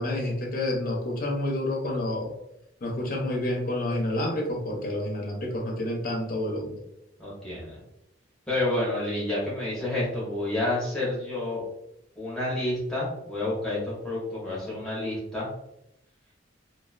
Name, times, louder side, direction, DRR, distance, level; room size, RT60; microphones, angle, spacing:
voice 1, 0.0-2.3 2.8-6.8, left 1 dB, 50° left, 0 dB, 0.5 m, -29 dB
voice 2, 7.2-7.8 8.5-11.6 12.2-15.5, left 1 dB, 5° left, -8 dB, 0.7 m, -29 dB
2.3 x 2.3 x 2.3 m, 0.85 s
head